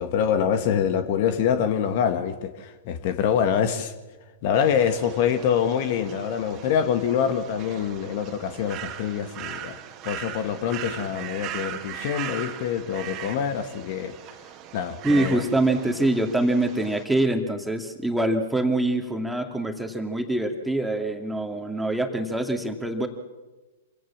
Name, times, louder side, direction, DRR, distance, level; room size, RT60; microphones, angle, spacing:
voice 1, 0.0-3.9 4.4-9.8 10.0-14.1 14.7-15.4, left 8 dB, 50° left, 9 dB, 1.7 m, -25 dB
sound 1, 4.5-17.0, right 11 dB, 35° right, 2.2 m, -39 dB
voice 2, 15.0-23.1, right 1 dB, 5° right, 4 dB, 2.5 m, -24 dB
26.5 x 17.0 x 7.4 m, 1.2 s
figure-of-eight pair, 105°, 0 cm